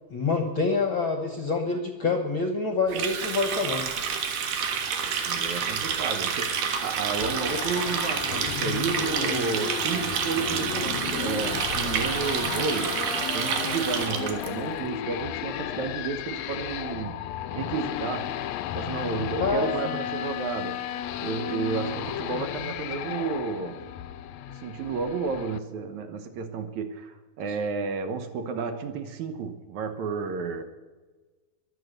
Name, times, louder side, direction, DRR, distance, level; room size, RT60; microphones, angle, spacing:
voice 1, 0.1-3.9 19.4-19.7, left 4 dB, 55° left, 4 dB, 1.4 m, -26 dB
Water tap faucet, 2.9-14.5, right 6 dB, 85° right, 3.2 m, -29 dB
voice 2, 5.3-13.1 13.3-17.2 17.5-18.3 18.7-20.8 21.2-23.8 24.6-30.6, right 5 dB, 70° right, 8 dB, 2.3 m, -32 dB
sound 1, 7.2-25.6, left 11 dB, 80° left, 1.5 m, -34 dB
23.0 x 7.9 x 6.6 m, 1.3 s
omnidirectional pair, 3.8 m